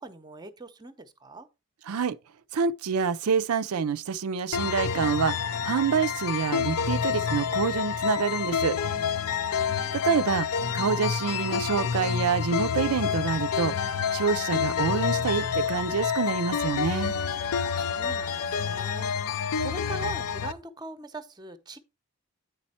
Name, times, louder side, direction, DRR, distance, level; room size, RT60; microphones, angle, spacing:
voice 1, 0.0-1.5 9.3-9.9 17.7-21.8, right 2 dB, 20° right, 0.7 m, -42 dB
voice 2, 1.9-2.2 2.5-8.8 9.9-10.5 10.7-13.8 14.1-17.1, right 6 dB, 85° right, 0.5 m, -27 dB
sound 1, 4.5-20.5, left 7 dB, 90° left, 0.6 m, -28 dB
9.1 x 4.3 x 4.2 m
head